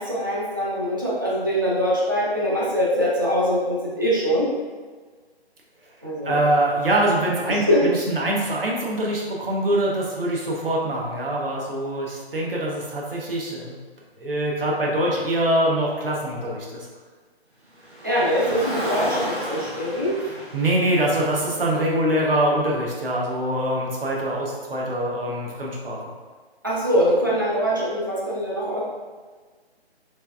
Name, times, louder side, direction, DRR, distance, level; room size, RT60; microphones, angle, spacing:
voice 1, 0.0-4.5 6.0-6.4 7.5-7.8 18.0-20.1 26.6-28.8, equal, 20° right, -7 dB, 0.4 m, -23 dB
voice 2, 6.2-13.8 14.2-16.9 20.5-26.0, right 1 dB, 60° right, -3 dB, 0.9 m, -24 dB
Car, 17.8-22.2, right 1 dB, 90° right, 1.1 m, -33 dB
3.3 x 3.2 x 2.2 m, 1.4 s
figure-of-eight pair, 145°, 32 cm